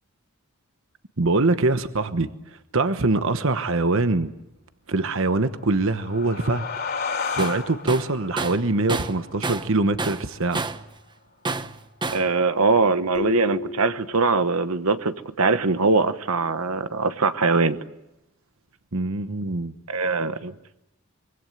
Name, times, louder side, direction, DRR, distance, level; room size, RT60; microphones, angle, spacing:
voice 1, 1.2-2.3 2.7-4.3 4.9-6.6 7.3-10.6 18.9-19.7, right 2 dB, 65° right, 1.1 m, -23 dB
sound 1, 5.6-10.8, left 5 dB, 50° left, 3.7 m, -34 dB
Tools, 7.4-7.6 7.9-9.7 10.0-10.9 11.5-12.3, right 3 dB, 20° right, 0.9 m, -29 dB
voice 2, 12.1-17.8 19.9-20.5, right 4 dB, 85° right, 1.2 m, -22 dB
sound 2, 13.1-14.8, left 3 dB, 25° left, 1.2 m, -34 dB
24.5 x 24.0 x 9.4 m
head